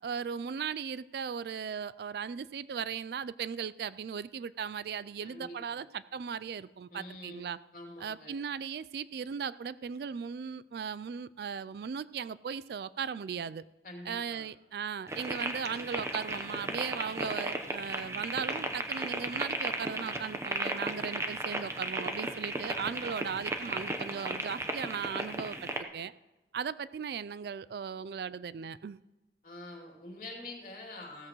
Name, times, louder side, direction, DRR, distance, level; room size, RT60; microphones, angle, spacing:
voice 1, 0.0-7.6 8.0-13.6 14.1-26.1 26.5-29.0, right 6 dB, 60° right, 17 dB, 0.3 m, -37 dB
voice 2, 5.2-5.8 6.9-8.4 13.8-14.4 29.4-31.3, left 2 dB, 45° left, 0 dB, 2.8 m, -46 dB
sound 1, 15.1-25.8, right 2 dB, 15° right, 0.8 m, -35 dB
16.5 x 14.0 x 3.1 m, 1.1 s
head